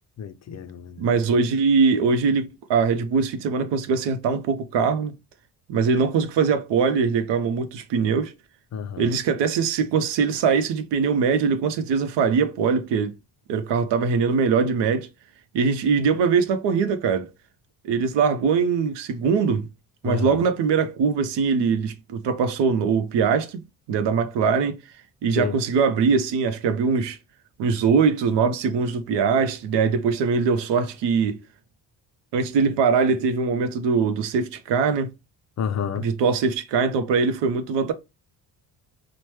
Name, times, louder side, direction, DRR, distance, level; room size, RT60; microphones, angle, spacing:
voice 1, 0.2-1.1 8.7-9.1 20.0-20.4 25.4-25.6 35.6-36.1, left 7 dB, 40° left, 0.4 m, -30 dB
voice 2, 1.0-5.1 5.7-8.3 9.0-13.1 13.5-15.1 15.5-17.3 17.8-19.7 20.0-23.6 23.9-24.8 25.2-27.2 27.6-31.4 32.3-35.1 36.0-37.9, right 5 dB, 70° right, 0.6 m, -22 dB
3.0 x 2.1 x 3.1 m
cardioid pair, 80°, 44 cm